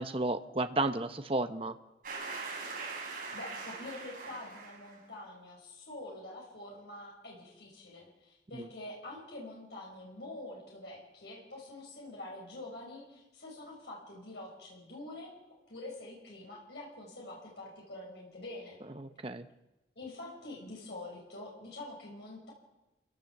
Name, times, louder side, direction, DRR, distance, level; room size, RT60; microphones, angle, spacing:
voice 1, 0.0-1.8 8.5-8.6 19.0-19.5, right 2 dB, 30° right, 9 dB, 0.8 m, -32 dB
sound 1, 2.0-5.0, right 4 dB, 50° right, 6.7 m, -41 dB
voice 2, 3.3-15.3 15.7-18.8 20.0-22.5, left 2 dB, 75° left, -3 dB, 5.7 m, -46 dB
27.5 x 17.5 x 7.3 m, 1.0 s
head